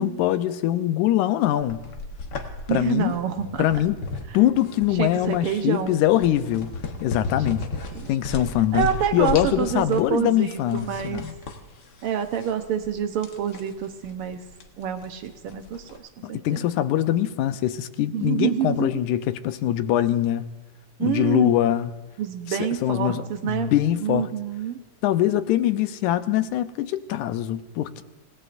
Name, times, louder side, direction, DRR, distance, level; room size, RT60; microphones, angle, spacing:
voice 1, 0.0-1.8 2.7-3.2 3.6-4.0 4.3-6.7 7.0-7.7 8.1-8.9 9.1-11.3 16.2-20.5 21.0-21.9 22.5-24.3 25.0-28.0, left 12 dB, 80° left, 2.1 m, -23 dB
sound 1, 1.6-16.0, left 3 dB, 55° left, 1.3 m, -36 dB
voice 2, 2.7-3.6 4.9-6.0 7.9-8.1 8.7-11.2 12.0-14.4 14.8-15.8 16.3-16.7 18.1-18.9 21.0-21.5 22.2-23.7 24.0-24.8, right 9 dB, 70° right, 1.4 m, -27 dB
28.0 x 17.5 x 2.5 m
omnidirectional pair, 3.5 m